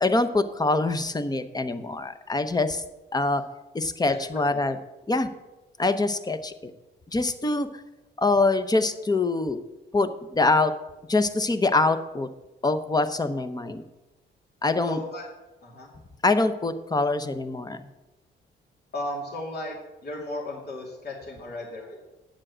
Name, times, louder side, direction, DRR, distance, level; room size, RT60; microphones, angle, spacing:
voice 1, 0.0-2.8 3.1-3.4 3.7-4.8 5.1-5.3 5.8-6.7 7.1-7.7 8.2-9.6 9.9-10.7 11.1-12.3 12.6-13.8 14.6-15.0 16.2-17.8, left 3 dB, 20° left, 10 dB, 0.8 m, -24 dB
voice 2, 4.1-4.6 14.9-15.2 15.6-15.9 18.9-19.8 20.0-22.0, left 1 dB, 55° left, -1 dB, 2.5 m, -35 dB
9.0 x 7.5 x 6.2 m, 1.0 s
cardioid pair, 90°, 20 cm